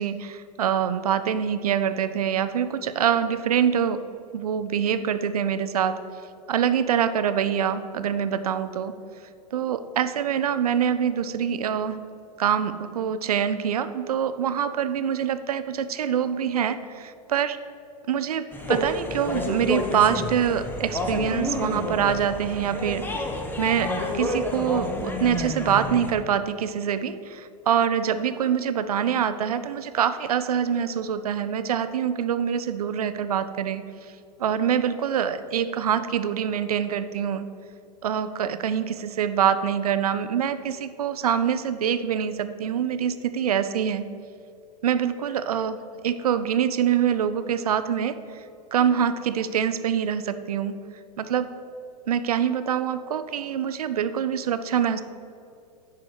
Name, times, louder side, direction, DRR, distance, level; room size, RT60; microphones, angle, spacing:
voice 1, 0.0-4.0 4.3-6.0 6.5-8.9 9.5-12.0 12.4-17.6 18.1-23.0 23.6-33.8 34.4-37.5 38.0-44.1 44.8-45.8 46.0-48.2 48.7-50.8 51.2-51.5 52.1-55.0, right 8 dB, 65° right, 11 dB, 0.6 m, -25 dB
sound 1, 18.5-26.1, left 1 dB, 10° left, 0.9 m, -29 dB
10.5 x 4.8 x 6.1 m, 2.6 s
figure-of-eight pair, 95°, 21 cm